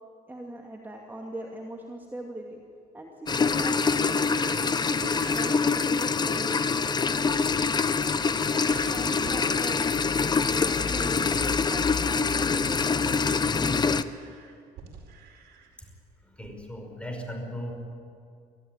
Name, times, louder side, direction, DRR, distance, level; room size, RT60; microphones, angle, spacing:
voice 1, 0.3-2.6 2.9-4.2 4.9-6.8 8.1-9.8 10.4-14.0, right 1 dB, 10° right, 0 dB, 2.4 m, -40 dB
sound 1, 3.3-14.0, left 5 dB, 25° left, 0.8 m, -25 dB
sound 2, 4.1-5.9 7.5-7.6 8.0-8.9 9.2-10.1 10.4-12.3 12.6-15.7 16.4-16.6, right 6 dB, 75° right, 4.7 m, -47 dB
voice 2, 16.2-17.7, equal, 5° left, 3 dB, 5.5 m, -37 dB
24.5 x 15.5 x 9.8 m, 2.4 s
cardioid pair, 110°, 17 cm